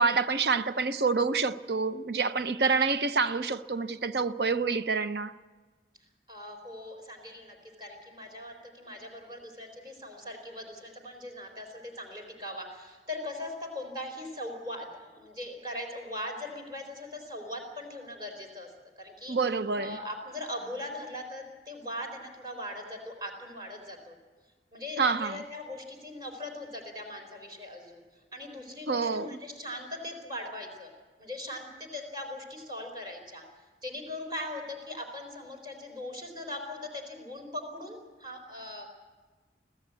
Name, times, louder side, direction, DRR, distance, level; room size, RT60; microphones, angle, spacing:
voice 1, 0.0-5.3 19.3-20.0 25.0-25.4 28.9-29.4, right 4 dB, 65° right, 0.8 m, -27 dB
voice 2, 6.3-18.7 19.0-19.4 19.8-24.2 24.7-28.0 28.3-30.9 31.2-33.4 33.8-38.9, left 1 dB, 25° right, 4.0 m, -40 dB
25.0 x 15.5 x 8.3 m
head